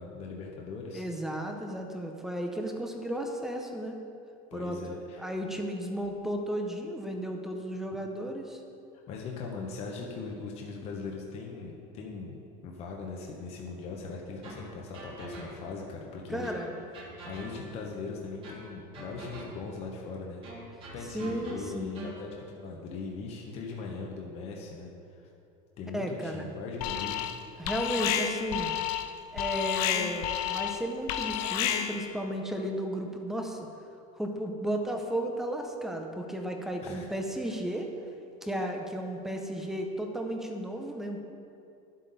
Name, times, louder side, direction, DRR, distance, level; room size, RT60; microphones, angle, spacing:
voice 1, 0.0-1.0 4.5-5.2 7.9-8.0 9.1-12.4 12.6-16.5 17.3-20.4 20.9-25.3 25.8-27.3 36.8-37.1, left 4 dB, 35° left, 0 dB, 0.9 m, -40 dB
voice 2, 0.9-4.0 4.5-8.6 16.3-16.7 21.1-22.1 25.9-26.5 27.6-28.7 29.3-33.6 34.2-37.9 38.4-41.2, equal, ahead, 3 dB, 0.6 m, -34 dB
sound 1, 14.4-15.8 16.4-17.9 18.4-19.8 20.4-22.3, right 2 dB, 30° right, 1.6 m, -46 dB
Alarm, 26.8-27.4 27.7-32.1, left 10 dB, 80° left, 0.6 m, -31 dB
11.0 x 7.6 x 4.0 m, 2.6 s
cardioid pair, 170°, 19 cm